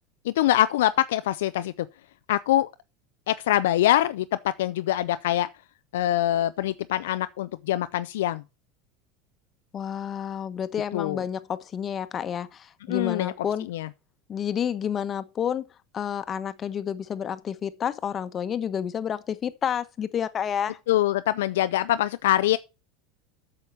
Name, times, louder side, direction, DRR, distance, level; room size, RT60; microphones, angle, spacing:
voice 1, 0.2-1.9 2.3-2.7 3.3-5.5 5.9-8.4 10.9-11.2 12.9-13.3 13.7-13.9 20.9-22.6, left 13 dB, 70° left, 0.4 m, -24 dB
voice 2, 9.7-13.7 14.3-15.6 15.9-20.8, left 8 dB, 35° left, 1.1 m, -30 dB
8.4 x 6.5 x 6.9 m
hypercardioid pair, 80°, 0 cm